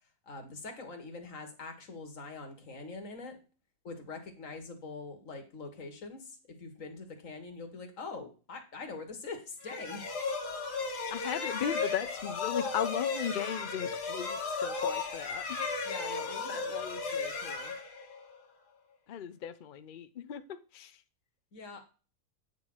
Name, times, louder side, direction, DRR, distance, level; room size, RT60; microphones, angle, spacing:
voice 1, 0.3-3.4 3.8-10.0 15.8-16.8 17.0-17.7 21.5-21.8, left 3 dB, 55° left, 5 dB, 1.9 m, -44 dB
sound 1, 9.6-18.4, left 4 dB, 90° left, 1.8 m, -35 dB
voice 2, 11.1-15.7 16.5-17.0 19.1-20.9, left 9 dB, 70° left, 11 dB, 0.4 m, -37 dB
8.8 x 3.9 x 6.1 m, 0.35 s
omnidirectional pair, 1.7 m